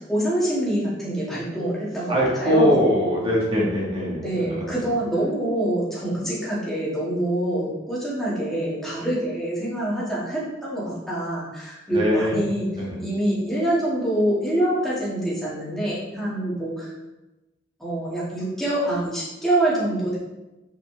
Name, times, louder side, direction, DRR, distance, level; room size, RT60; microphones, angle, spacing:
voice 1, 0.0-2.8 4.2-12.7 13.0-16.9 17.8-20.2, right 1 dB, ahead, -8 dB, 2.1 m, -25 dB
voice 2, 2.1-4.2 11.9-12.5 12.8-12.9, equal, 30° right, -5 dB, 1.9 m, -21 dB
6.1 x 4.8 x 3.4 m, 1.0 s
head